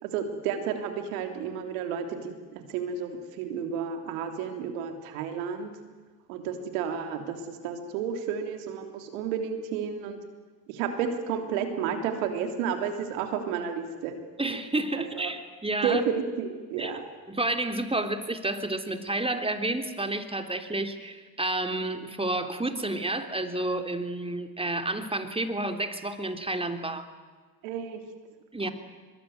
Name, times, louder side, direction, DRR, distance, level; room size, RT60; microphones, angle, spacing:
voice 1, 0.0-5.7 6.3-10.2 10.7-14.2 14.9-15.3 15.8-17.0 27.6-28.0 28.6-28.7, right 7 dB, 90° right, 6 dB, 3.4 m, -31 dB
voice 2, 14.4-16.0 16.8-16.9 17.3-27.1 28.5-28.7, right 2 dB, 15° right, 6 dB, 3.4 m, -30 dB
23.5 x 22.0 x 9.5 m, 1.4 s
supercardioid pair, 65°, 40 cm